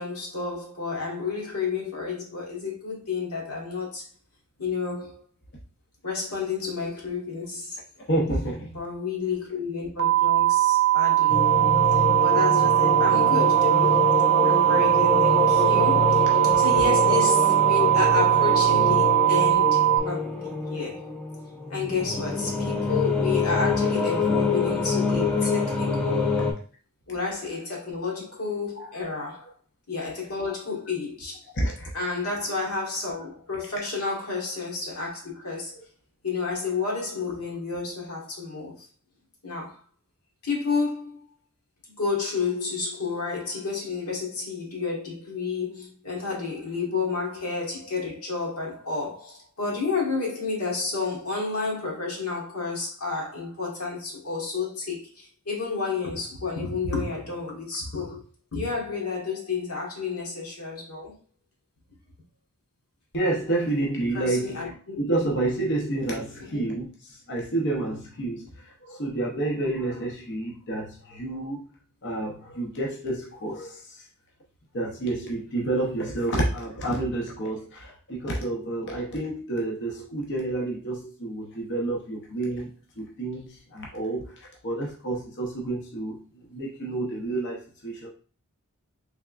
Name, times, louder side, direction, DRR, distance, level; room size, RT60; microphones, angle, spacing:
voice 1, 0.0-4.0 4.6-5.2 6.0-7.8 8.7-11.5 11.9-14.1 14.4-16.3 16.6-21.0 21.7-26.4 27.1-29.5 29.9-31.4 31.9-35.8 36.2-38.9 39.4-39.8 40.4-41.2 42.0-58.2 58.5-61.1 64.1-65.0 66.5-66.7, left 4 dB, 75° left, 1.6 m, -30 dB
voice 2, 8.1-8.8 25.4-25.5 28.8-28.9 31.5-31.9 63.1-71.6 72.0-74.0 74.7-82.7 83.0-86.2 86.5-88.1, right 2 dB, 55° left, 0.8 m, -29 dB
sound 1, 10.0-20.0, right 15 dB, 45° right, 0.4 m, -20 dB
sound 2, 11.3-26.5, left 3 dB, 5° left, 0.6 m, -26 dB
3.5 x 3.4 x 2.4 m
head